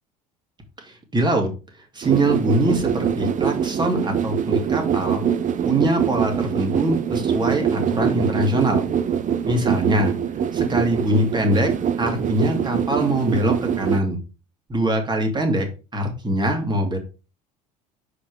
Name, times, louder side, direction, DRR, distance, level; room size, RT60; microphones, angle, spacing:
voice 1, 0.9-1.5 1.9-5.2 5.6-8.8 9.4-10.1 10.5-11.7 12.0-14.2 14.7-15.7 15.9-17.0, right 1 dB, 25° right, 2 dB, 2.8 m, -23 dB
sound 1, 2.0-14.0, right 8 dB, 40° right, 0.8 m, -24 dB
5.1 x 5.1 x 5.0 m, 0.31 s
hypercardioid pair, 75°, 19 cm